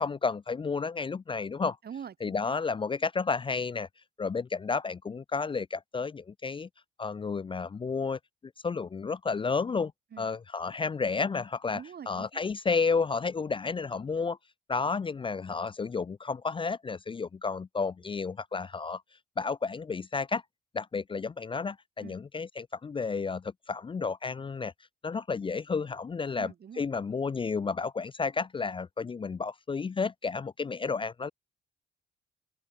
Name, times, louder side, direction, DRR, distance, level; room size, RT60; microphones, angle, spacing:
voice 1, 0.0-1.8 2.2-3.9 4.2-6.7 7.0-8.2 8.6-9.9 10.2-14.4 14.7-19.0 19.4-20.4 20.7-24.7 25.0-31.3, left 4 dB, 25° left, 0.5 m, -31 dB
voice 2, 1.8-2.5 10.1-10.3 11.7-12.4 22.0-22.2 26.4-26.9, right 8 dB, 55° right, 5.2 m, -44 dB
open air
cardioid pair, 90°, 20 cm